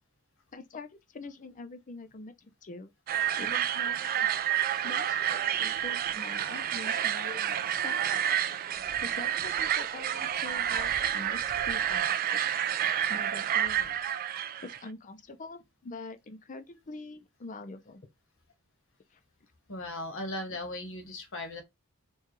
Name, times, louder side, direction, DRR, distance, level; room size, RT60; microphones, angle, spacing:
voice 1, 0.5-2.9 3.4-4.3 4.8-8.2 9.0-12.4 13.1-14.0 14.6-18.0 19.1-19.2, left 3 dB, 35° left, 0.5 m, -44 dB
sound 1, 3.1-14.8, right 10 dB, 40° right, 0.3 m, -29 dB
voice 2, 19.7-21.6, left 1 dB, 60° left, 1.2 m, -37 dB
4.6 x 2.3 x 3.0 m
head